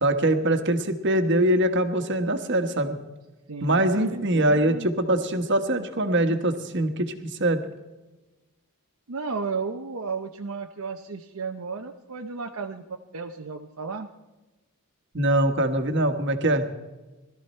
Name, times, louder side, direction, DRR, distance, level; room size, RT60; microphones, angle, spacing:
voice 1, 0.0-3.0 3.6-7.6 15.1-16.6, right 1 dB, 55° right, 7 dB, 1.4 m, -23 dB
voice 2, 3.5-4.9 9.1-12.8 13.1-14.1, right 4 dB, 75° right, 4 dB, 0.8 m, -34 dB
20.5 x 13.5 x 4.4 m, 1.1 s
head